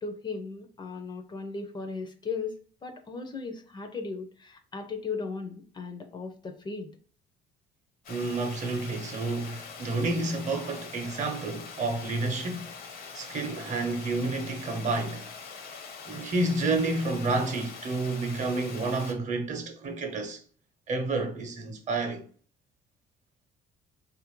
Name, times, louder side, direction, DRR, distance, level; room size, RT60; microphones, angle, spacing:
voice 1, 0.0-2.5 2.8-6.9, left 4 dB, 25° left, 0.5 m, -37 dB
Water, 8.0-19.1, left 5 dB, 60° left, 0.7 m, -43 dB
voice 2, 8.1-12.7 13.1-15.3 16.1-20.4 20.9-22.2, right 3 dB, 45° right, 0.8 m, -30 dB
2.9 x 2.5 x 3.0 m
cardioid pair, 110°, 17 cm